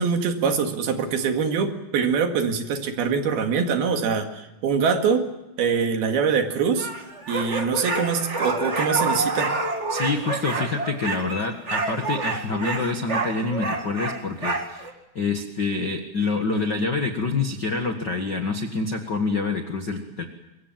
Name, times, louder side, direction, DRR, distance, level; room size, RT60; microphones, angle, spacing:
voice 1, 0.0-5.3 5.6-6.9 7.3-9.5, right 6 dB, 65° right, 5 dB, 3.7 m, -24 dB
sound 1, 6.8-14.9, right 3 dB, 50° right, 0.8 m, -28 dB
voice 2, 9.9-14.9 15.1-20.2, left 3 dB, 80° left, 5 dB, 0.9 m, -27 dB
25.5 x 23.5 x 7.5 m, 0.99 s
omnidirectional pair, 5.0 m